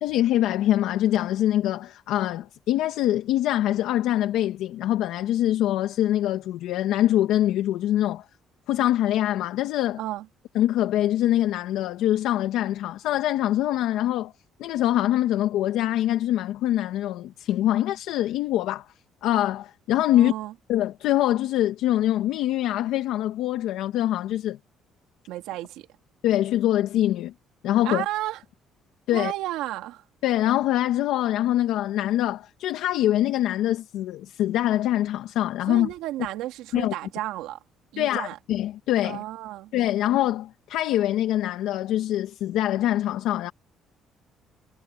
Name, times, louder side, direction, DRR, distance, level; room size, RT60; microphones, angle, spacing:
voice 1, 0.0-8.2 8.7-10.0 10.5-14.3 14.6-18.8 19.2-20.3 20.7-24.6 26.2-27.3 27.6-28.0 29.1-29.3 30.2-35.9 36.7-36.9 38.0-39.2 39.7-43.5, left 13 dB, 80° left, 1.5 m, -24 dB
voice 2, 20.1-20.5 25.3-25.9 27.8-28.4 29.1-30.0 35.7-37.6 37.9-38.4 39.0-39.7, right 15 dB, 90° right, 2.6 m, -32 dB
cardioid pair, 135°, 0 cm